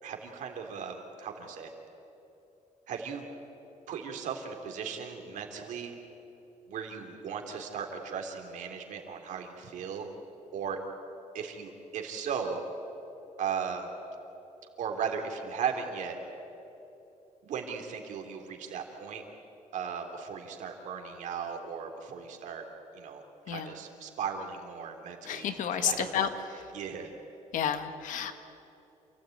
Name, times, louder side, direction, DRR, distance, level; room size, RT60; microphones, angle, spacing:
voice 1, 0.0-1.7 2.9-3.2 3.9-5.9 6.7-10.1 10.5-10.8 11.3-12.6 13.4-13.9 14.8-16.2 17.4-19.2 19.7-22.6 22.9-26.1 26.7-27.1, right 7 dB, 70° right, 3 dB, 3.2 m, -37 dB
voice 2, 25.3-26.3 27.5-28.3, left 9 dB, 75° left, 8 dB, 1.6 m, -30 dB
28.0 x 16.5 x 9.2 m, 2.9 s
cardioid pair, 180°, 13 cm